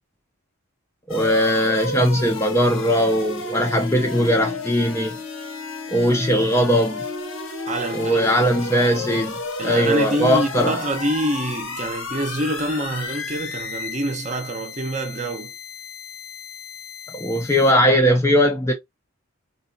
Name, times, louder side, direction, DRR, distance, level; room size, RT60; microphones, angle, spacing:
sound 1, 1.1-17.7, left 4 dB, 65° left, 0.8 m, -33 dB
voice 1, 1.1-5.2 5.9-7.0 7.9-9.3 9.6-10.8 17.1-18.7, equal, 10° left, 0.4 m, -19 dB
voice 2, 7.7-8.5 9.6-15.5, right 1 dB, 30° right, 0.6 m, -26 dB
3.8 x 2.3 x 2.5 m
head